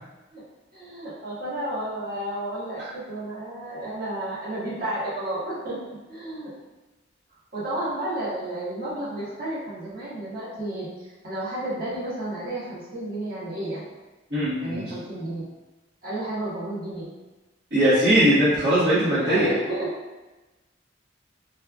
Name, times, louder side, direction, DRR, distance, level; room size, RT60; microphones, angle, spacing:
voice 1, 0.7-5.8 6.1-6.5 7.5-13.9 14.6-15.5 16.0-17.1 19.2-19.9, right 1 dB, 50° right, -11 dB, 1.4 m, -32 dB
voice 2, 14.3-14.9 17.7-19.5, right 1 dB, 65° right, -12 dB, 1.2 m, -20 dB
3.5 x 3.3 x 2.3 m, 1.1 s
head